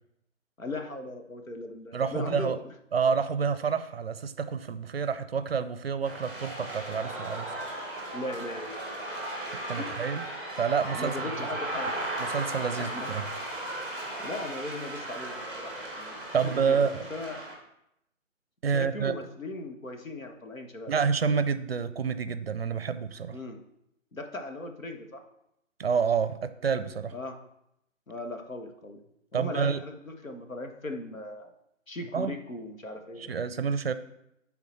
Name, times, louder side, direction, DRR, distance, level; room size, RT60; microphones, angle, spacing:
voice 1, 0.6-2.6 8.1-9.0 9.7-10.2 10.9-12.1 12.8-13.1 14.2-17.4 18.7-20.9 23.3-23.6 24.1-25.2 27.1-27.4 28.1-29.0 29.3-31.5 31.9-33.4, left 2 dB, 85° left, 4 dB, 1.3 m, -38 dB
voice 2, 1.9-2.6 2.9-7.5 9.7-10.2 10.5-11.3 12.2-13.2 16.3-17.0 18.6-19.1 20.9-23.4 25.8-27.1 29.3-29.8 32.1-32.3 33.3-33.9, right 6 dB, 50° right, 13 dB, 0.5 m, -28 dB
sound 1, 6.0-17.6, right 1 dB, 10° left, 0.9 m, -36 dB
10.5 x 4.0 x 4.3 m, 0.81 s
figure-of-eight pair, 150°, 39 cm